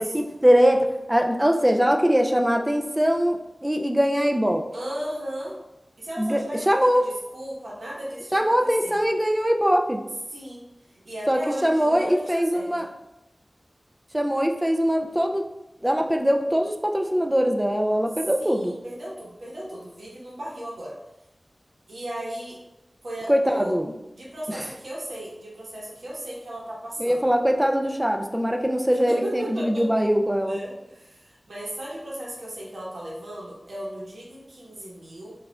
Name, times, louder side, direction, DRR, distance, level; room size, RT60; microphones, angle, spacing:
voice 1, 0.0-4.7 6.2-7.1 8.3-10.0 11.3-12.8 14.1-15.4 15.8-18.7 23.3-23.9 27.0-30.6, equal, 10° right, 3 dB, 0.4 m, -22 dB
voice 2, 4.7-5.6 6.0-9.0 10.3-10.6 11.0-12.9 18.4-21.0 21.9-22.6 23.0-23.7 24.1-27.2 28.9-29.9 30.4-35.3, right 1 dB, 90° right, -6 dB, 1.0 m, -36 dB
4.7 x 2.4 x 2.2 m, 0.91 s
wide cardioid pair, 70°, 0 cm